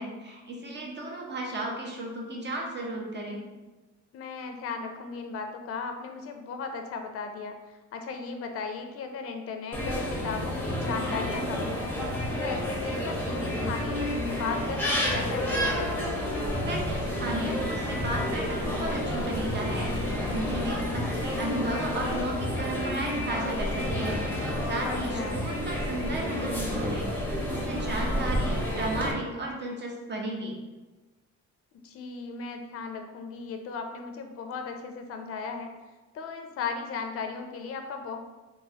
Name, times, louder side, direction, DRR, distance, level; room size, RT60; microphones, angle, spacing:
voice 1, 0.0-3.5 16.6-19.9 20.3-24.2 24.6-27.1 27.5-30.6, right 1 dB, 35° right, 0 dB, 0.7 m, -34 dB
voice 2, 4.1-11.9 12.4-15.8 24.8-25.4 31.8-35.7 36.1-38.2, left 5 dB, 50° left, 5 dB, 0.4 m, -36 dB
sound 1, 9.7-29.1, left 1 dB, 5° left, 0.7 m, -30 dB
3.0 x 2.5 x 2.7 m, 1.2 s
cardioid pair, 90°, 30 cm